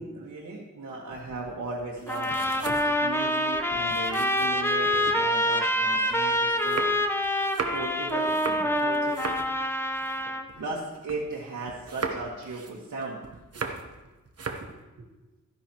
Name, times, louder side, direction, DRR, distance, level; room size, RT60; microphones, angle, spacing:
voice 1, 0.0-6.9 7.7-9.4 10.6-13.2 13.6-13.7 14.6-14.7 15.0-15.1, right 3 dB, 70° right, -5 dB, 1.8 m, -37 dB
sound 1, 1.1-5.2 5.6-11.4 11.7-14.0 14.3-14.8, right 4 dB, 50° right, 1.2 m, -38 dB
sound 2, 2.1-10.5, equal, 5° left, 0.9 m, -26 dB
13.5 x 10.0 x 3.0 m, 1.1 s
wide cardioid pair, 85°, 31 cm